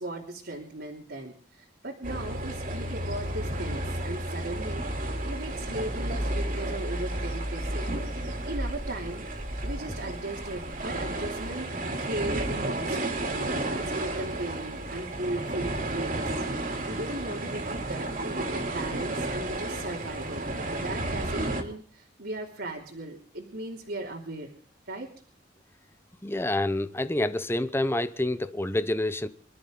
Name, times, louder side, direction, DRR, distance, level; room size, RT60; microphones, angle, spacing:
voice 1, 0.0-4.9 5.2-7.9 8.1-9.3 9.6-11.7 12.0-16.4 16.8-24.5 24.9-25.1, right 1 dB, 65° right, 3.1 m, -37 dB
sound 1, 2.0-21.6, right 1 dB, 50° right, 3.3 m, -32 dB
voice 2, 26.2-29.3, left 1 dB, 15° left, 0.8 m, -27 dB
26.0 x 13.0 x 3.9 m
head